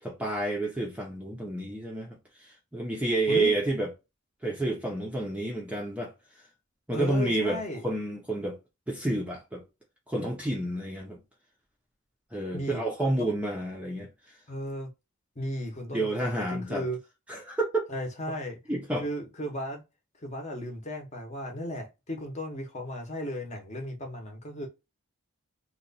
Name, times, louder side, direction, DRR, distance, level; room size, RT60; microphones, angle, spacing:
voice 1, 0.0-3.9 4.4-6.4 6.9-8.6 8.9-9.6 10.1-11.2 12.3-14.4 15.9-16.8 17.3-17.9 18.7-19.1, right 2 dB, 5° right, 0.5 m, -30 dB
voice 2, 6.9-7.8 12.5-13.1 14.5-14.9 15.4-17.0 17.9-18.6 19.0-19.8 20.2-24.7, equal, 30° left, 0.8 m, -35 dB
2.9 x 2.2 x 3.9 m
head